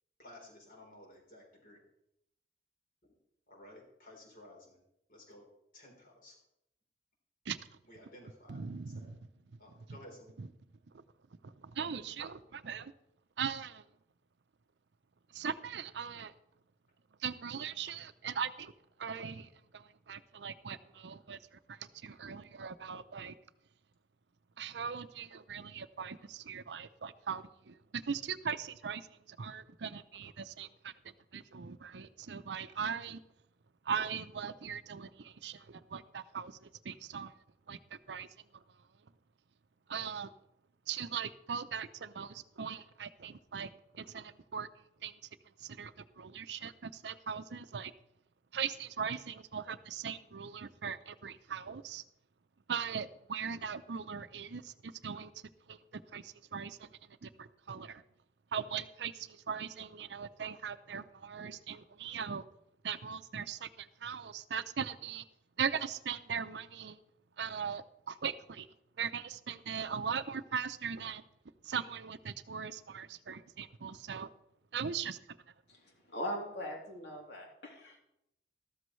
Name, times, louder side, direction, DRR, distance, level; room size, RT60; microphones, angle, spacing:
voice 1, 0.2-1.8 3.5-4.8 5.1-5.4 5.7-6.4 7.9-8.7 9.0-9.1 9.6-10.4, left 1 dB, 50° left, -1 dB, 3.8 m, -55 dB
voice 2, 8.5-9.2 9.9-10.0 10.4-10.5 11.4-12.9 13.4-13.8 15.3-16.3 17.2-18.7 19.0-21.4 21.7-23.3 24.6-30.9 31.3-33.2 33.9-37.3 37.7-38.3 39.9-40.3 40.9-44.7 45.0-45.1 45.6-47.9 48.5-52.0 52.7-55.3 55.7-56.9 57.2-58.0 58.5-62.4 62.8-65.2 65.6-67.0 67.4-68.7 69.0-71.2 71.6-74.3 74.7-75.4, right 7 dB, 80° right, 13 dB, 0.6 m, -40 dB
voice 3, 75.7-78.0, equal, 75° left, -1 dB, 3.1 m, -41 dB
13.5 x 13.0 x 3.2 m, 0.81 s
head